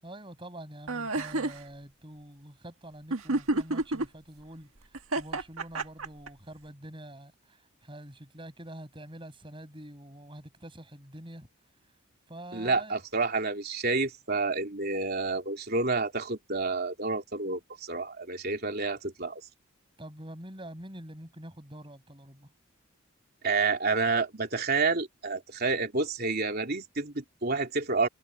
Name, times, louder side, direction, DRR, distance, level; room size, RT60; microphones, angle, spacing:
voice 1, 0.0-4.7 5.2-7.3 7.8-11.5 12.3-13.0 20.0-22.5, right 1 dB, 25° right, 7.8 m, -45 dB
sound 1, 0.9-1.6 3.1-4.1 4.9-6.3, right 2 dB, 75° right, 1.7 m, -29 dB
voice 2, 12.5-19.4 23.4-28.1, right 3 dB, 45° right, 3.3 m, -29 dB
head